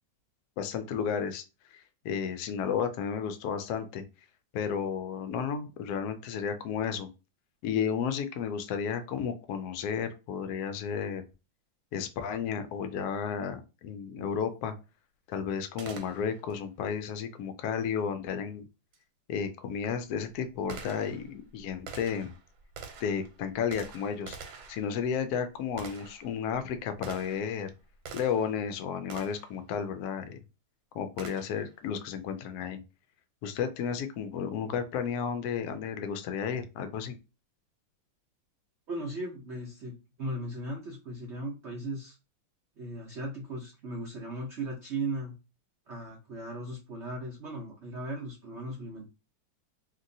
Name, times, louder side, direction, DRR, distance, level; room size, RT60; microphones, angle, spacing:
voice 1, 0.6-1.4 1.7-4.0 4.5-7.1 7.6-11.2 11.9-14.7 15.3-18.7 19.3-22.3 23.0-24.4 24.7-27.7 28.1-30.4 30.9-32.8 33.4-37.2, left 7 dB, 75° left, 9 dB, 0.9 m, -32 dB
Gunshot gunfire, 15.8-16.6 18.9-19.0 19.7-28.6 29.1-29.6 31.2-31.7, right 5 dB, 85° right, 1.4 m, -47 dB
voice 2, 38.9-42.2 42.8-45.4 45.9-49.1, right 2 dB, 70° right, -2 dB, 0.6 m, -37 dB
2.9 x 2.9 x 2.6 m, 0.29 s
omnidirectional pair, 2.1 m